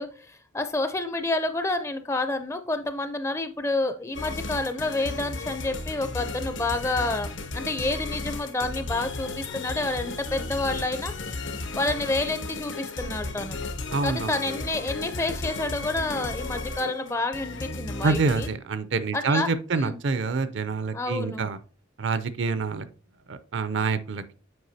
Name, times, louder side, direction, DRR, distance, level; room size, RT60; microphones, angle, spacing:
voice 1, 0.0-11.1 11.7-13.6 14.0-18.5 19.1-20.0 20.9-21.5, left 2 dB, 15° left, 9 dB, 0.4 m, -29 dB
sound 1, 4.1-18.5, left 2 dB, 65° left, 0.7 m, -34 dB
voice 2, 13.9-14.3 18.0-21.6 22.0-22.9 23.3-24.3, right 4 dB, 60° right, 13 dB, 0.5 m, -26 dB
7.9 x 4.7 x 2.7 m, 0.37 s
head